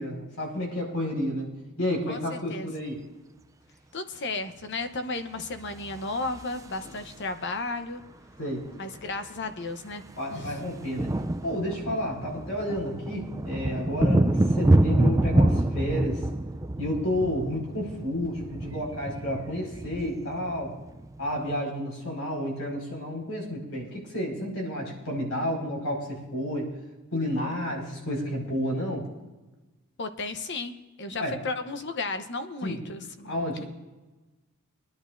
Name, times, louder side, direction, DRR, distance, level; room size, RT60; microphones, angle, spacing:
voice 1, 0.0-1.5 1.8-3.0 6.8-6.9 8.4-8.7 10.2-11.1 11.4-16.2 16.8-20.8 21.2-26.7 27.1-29.1 31.2-31.3 32.6-32.8 33.2-33.7, left 1 dB, 80° left, -1 dB, 5.1 m, -31 dB
voice 2, 2.1-2.7 3.9-8.0 8.8-10.0 10.3-10.6 30.0-30.7 31.0-33.6, left 3 dB, 55° left, 8 dB, 0.9 m, -34 dB
sound 1, 5.8-7.3 8.6-8.7 8.9-9.2 9.4-21.5, right 1 dB, 15° right, 0.4 m, -27 dB
24.5 x 10.5 x 2.6 m, 1.1 s
head